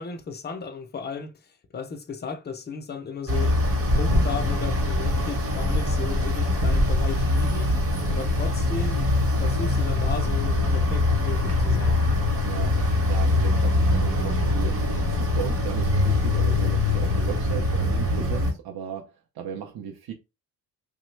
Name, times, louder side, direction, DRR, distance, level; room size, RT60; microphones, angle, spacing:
voice 1, 0.0-3.6 3.9-7.7 8.1-12.0, left 5 dB, 30° left, 0.4 m, -35 dB
sound 1, 3.3-18.5, left 2 dB, 35° right, 0.9 m, -23 dB
voice 2, 12.4-20.1, right 8 dB, 70° right, 0.6 m, -36 dB
3.1 x 2.1 x 3.1 m
wide cardioid pair, 165°, 40 cm